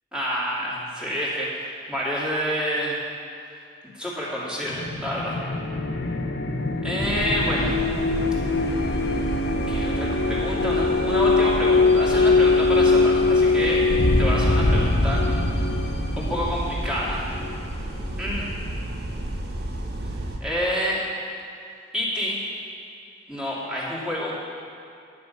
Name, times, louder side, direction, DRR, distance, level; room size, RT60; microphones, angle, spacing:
voice 1, 0.1-3.0 3.8-5.4 6.8-7.7 9.7-13.8 14.2-15.2 16.2-17.3 18.2-18.4 20.4-21.0 21.9-22.4 23.3-24.3, equal, 5° right, -7 dB, 2.4 m, -28 dB
sound 1, 4.6-18.1, left 3 dB, 65° left, 0.8 m, -22 dB
sound 2, 7.0-20.4, right 1 dB, 60° right, 1.1 m, -32 dB
10.0 x 9.8 x 5.5 m, 2.5 s
head